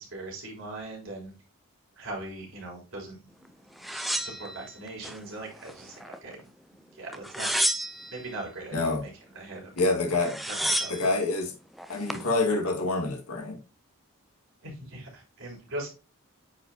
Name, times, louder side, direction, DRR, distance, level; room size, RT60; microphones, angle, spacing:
voice 1, 0.0-1.3 2.0-3.5 3.8-6.4 6.9-7.5 8.1-9.7 10.5-11.0 14.6-15.9, right 2 dB, 60° right, 3.6 m, -40 dB
sound 1, 3.8-5.2 5.6-6.4 7.1-8.2 9.8-9.9 10.1-11.1 11.8-12.3, equal, ahead, 0.3 m, -30 dB
voice 2, 8.7-9.0 9.8-10.4 10.9-11.5 11.9-13.6, left 2 dB, 85° left, 1.8 m, -27 dB
8.9 x 4.8 x 2.7 m
head